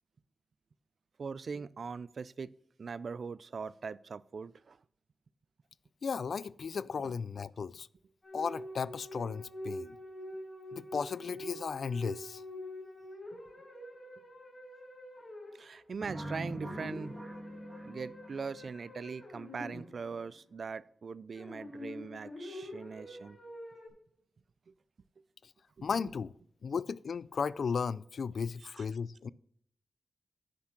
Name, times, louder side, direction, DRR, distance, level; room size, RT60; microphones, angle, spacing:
voice 1, 1.2-2.5 2.8-4.8 7.0-7.1 13.3-13.4 15.6-17.2 17.8-23.4 25.8-25.9, right 5 dB, 55° right, 0.3 m, -41 dB
voice 2, 6.0-7.9 8.3-10.0 10.7-12.4 25.4-25.5 25.8-26.3 26.6-29.3, left 5 dB, 60° left, 0.3 m, -35 dB
sound 1, 8.2-15.8 16.2-20.3 21.3-23.9, left 1 dB, 20° left, 4.5 m, -46 dB
sound 2, 16.0-18.9, right 1 dB, 20° right, 1.4 m, -43 dB
10.0 x 6.1 x 5.9 m
wide cardioid pair, 150°, 0 cm